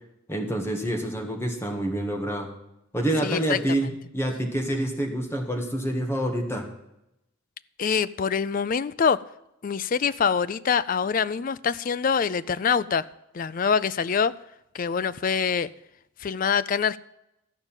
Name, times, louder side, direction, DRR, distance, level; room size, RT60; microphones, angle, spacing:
voice 1, 0.3-2.5 2.9-6.7, right 1 dB, 10° left, 1.7 m, -27 dB
voice 2, 3.2-3.6 7.8-9.2 9.6-13.1 13.3-14.3 14.7-15.7 16.2-17.0, left 6 dB, 40° left, 0.3 m, -25 dB
13.5 x 5.3 x 8.9 m
head